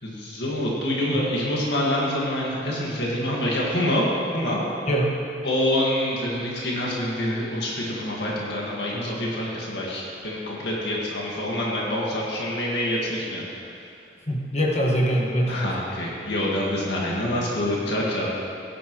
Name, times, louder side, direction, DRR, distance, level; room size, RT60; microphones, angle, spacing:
voice 1, 0.0-4.0 4.3-4.6 5.4-13.4 15.5-18.3, left 1 dB, 70° left, -4 dB, 2.0 m, -26 dB
voice 2, 4.9-5.2 14.3-15.7, equal, 35° left, -2 dB, 1.6 m, -23 dB
17.0 x 10.0 x 3.2 m, 2.5 s
head